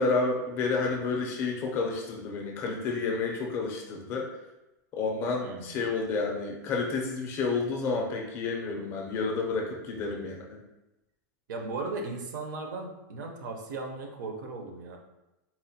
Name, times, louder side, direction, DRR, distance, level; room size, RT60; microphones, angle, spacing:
voice 1, 0.0-4.3 4.9-10.6, left 4 dB, 25° left, 0 dB, 0.4 m, -30 dB
voice 2, 5.4-5.8 11.5-15.0, right 3 dB, 70° right, 2 dB, 0.6 m, -37 dB
4.1 x 2.1 x 2.7 m, 0.98 s
supercardioid pair, 170°, 10 cm